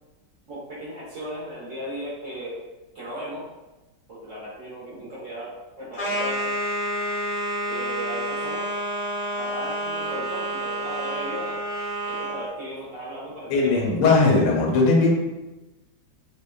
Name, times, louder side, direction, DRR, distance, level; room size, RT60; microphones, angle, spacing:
voice 1, 0.5-2.6 2.9-3.5 4.1-6.5 7.7-8.7 9.3-11.6 12.0-13.9, equal, 60° right, -8 dB, 0.8 m, -36 dB
sound 1, 5.9-12.5, right 1 dB, 60° left, 0.8 m, -29 dB
voice 2, 13.5-15.1, left 3 dB, 85° left, -1 dB, 1.3 m, -19 dB
2.9 x 2.1 x 2.2 m, 1.1 s
omnidirectional pair, 1.9 m